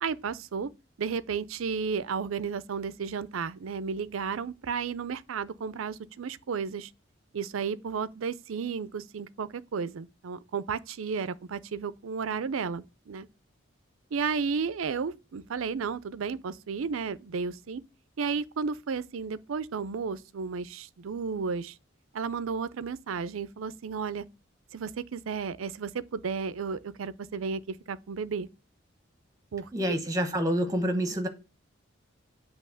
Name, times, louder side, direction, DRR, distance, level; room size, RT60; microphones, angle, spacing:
voice 1, 0.0-0.7 1.0-6.9 7.3-13.3 14.1-17.8 18.2-21.8 22.1-24.2 24.7-28.5 29.5-29.7, right 5 dB, 85° right, 0.5 m, -33 dB
voice 2, 29.7-31.3, equal, 15° right, 1.0 m, -27 dB
7.7 x 2.9 x 6.2 m
head